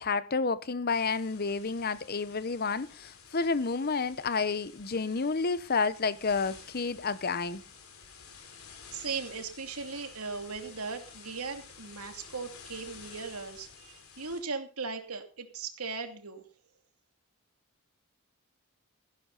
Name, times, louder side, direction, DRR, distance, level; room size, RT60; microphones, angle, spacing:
voice 1, 0.0-7.6, left 4 dB, 45° left, 0.8 m, -30 dB
sound 1, 0.9-14.4, left 6 dB, 80° left, 3.5 m, -52 dB
voice 2, 8.9-16.4, right 4 dB, 90° right, 2.6 m, -38 dB
15.5 x 12.0 x 4.0 m
head